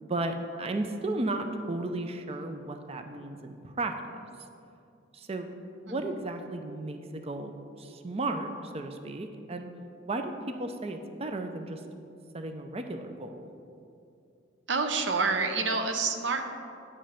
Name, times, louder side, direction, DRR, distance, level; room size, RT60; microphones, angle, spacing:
voice 1, 0.0-4.2 5.1-5.5 5.8-9.7 10.1-11.8 12.3-13.5, right 2 dB, 30° right, 6 dB, 0.5 m, -34 dB
voice 2, 14.7-16.4, right 4 dB, 65° right, 6 dB, 0.7 m, -28 dB
8.5 x 5.3 x 5.7 m, 2.6 s
head